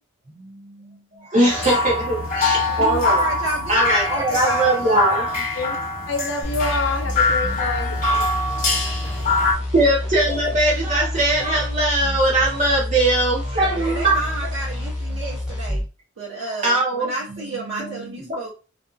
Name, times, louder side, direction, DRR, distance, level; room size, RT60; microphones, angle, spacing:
voice 1, 0.3-3.2 3.7-5.3 7.4-7.6 8.0-8.3 9.7-14.2 16.5-17.1 17.7-18.3, right 1 dB, 35° right, -4 dB, 0.7 m, -21 dB
voice 2, 1.4-1.9 3.0-5.4 7.8-8.4 8.7-9.7 13.7-15.8 16.2-18.5, right 2 dB, 80° right, -6 dB, 0.9 m, -32 dB
sound 1, 1.5-9.5, left 3 dB, 45° left, 1.0 m, -23 dB
voice 3, 6.1-8.0, left 3 dB, 75° left, 4 dB, 0.6 m, -26 dB
sound 2, 6.4-15.9, left 1 dB, 5° right, 0.7 m, -28 dB
2.6 x 2.5 x 2.3 m, 0.33 s
head